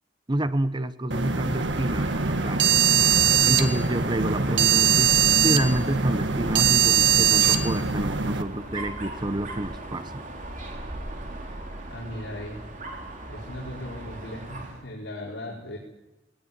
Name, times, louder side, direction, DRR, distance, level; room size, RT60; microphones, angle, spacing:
voice 1, 0.3-2.7 3.4-10.1, right 1 dB, 25° right, 12 dB, 0.9 m, -28 dB
sound 1, 1.1-8.4, right 7 dB, 75° right, 1.7 m, -21 dB
Dog, 1.6-14.9, right 1 dB, 45° right, 4.2 m, -39 dB
voice 2, 11.9-12.6 13.3-15.8, left 1 dB, 75° left, -5 dB, 5.0 m, -37 dB
20.5 x 19.5 x 9.6 m, 1.0 s
head